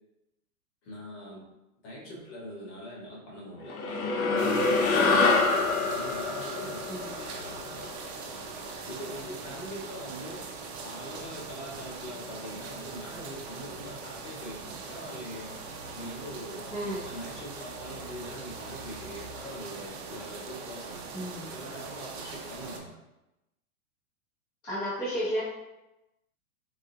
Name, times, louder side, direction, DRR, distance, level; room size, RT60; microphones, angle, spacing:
voice 1, 0.8-1.4 1.8-4.1 4.4-8.0 8.5-10.4 10.8-15.5 15.9-16.7 17.0-21.0 21.5-22.9, equal, 50° left, -4 dB, 1.4 m, -43 dB
sound 1, 3.7-8.4, left 3 dB, 70° left, 0.7 m, -26 dB
sound 2, 4.4-22.8, right 4 dB, 50° right, 0.5 m, -41 dB
voice 2, 6.9-7.2 16.7-17.0 21.1-21.5 24.6-25.4, equal, 10° left, -11 dB, 0.5 m, -32 dB
3.8 x 2.2 x 2.7 m, 0.95 s
hypercardioid pair, 155°, 45 cm